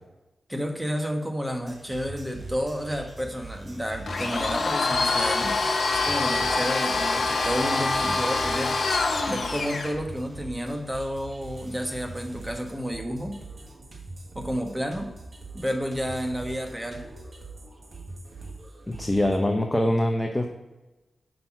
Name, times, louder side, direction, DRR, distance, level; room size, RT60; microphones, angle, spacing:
voice 1, 0.5-5.5 5.9-8.7 9.3-13.4 14.3-15.1 15.5-17.0, equal, 10° right, 3 dB, 1.2 m, -31 dB
sound 1, 1.6-19.4, right 2 dB, 50° right, 1.5 m, -42 dB
Domestic sounds home sounds, 4.1-9.9, left 3 dB, 65° left, 0.9 m, -25 dB
voice 2, 18.9-20.5, left 1 dB, 15° left, 2 dB, 0.7 m, -24 dB
5.6 x 4.0 x 5.9 m, 1.1 s
cardioid pair, 55°, 0 cm